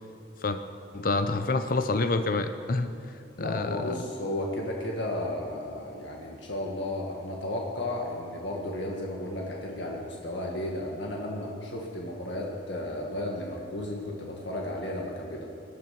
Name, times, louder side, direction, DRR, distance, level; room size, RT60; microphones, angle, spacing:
voice 1, 0.9-2.9 3.4-4.0, left 3 dB, 50° left, 9 dB, 0.6 m, -27 dB
voice 2, 3.4-15.4, left 1 dB, 80° left, -1 dB, 1.8 m, -34 dB
18.0 x 11.5 x 5.9 m, 2.6 s
head